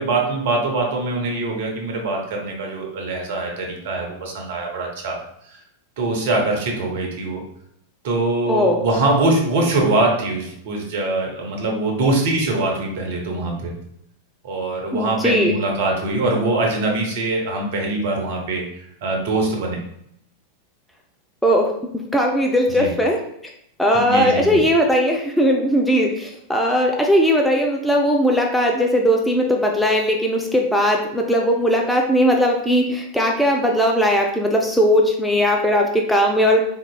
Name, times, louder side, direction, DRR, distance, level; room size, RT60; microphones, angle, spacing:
voice 1, 0.0-5.2 6.0-7.4 8.0-13.7 14.4-19.8 22.7-22.9 23.9-24.6, right 2 dB, 55° right, 0 dB, 0.8 m, -23 dB
voice 2, 14.9-15.5 21.4-21.7 22.1-23.2 23.8-36.6, equal, 5° left, 0 dB, 0.4 m, -18 dB
3.8 x 2.9 x 2.2 m, 0.73 s
figure-of-eight pair, 90°, 0 cm